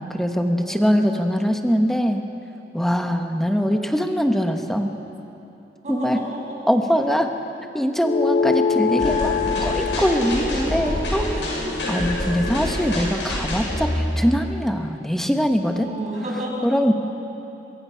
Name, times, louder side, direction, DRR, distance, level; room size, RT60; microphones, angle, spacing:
voice 1, 0.0-2.2 2.7-4.9 5.9-6.2 6.7-7.3 7.7-9.3 9.6-11.4 11.9-15.9 16.6-16.9, equal, ahead, 4 dB, 1.2 m, -22 dB
voice 2, 0.6-0.9 5.8-6.6 10.3-11.1 11.6-11.7 15.7-16.7, right 1 dB, 40° right, -4 dB, 6.7 m, -32 dB
sound 1, 8.0-12.8, left 5 dB, 45° left, 0.5 m, -25 dB
sound 2, 9.0-14.4, left 1 dB, 85° left, 7.2 m, -26 dB
23.0 x 23.0 x 5.7 m, 3.0 s
head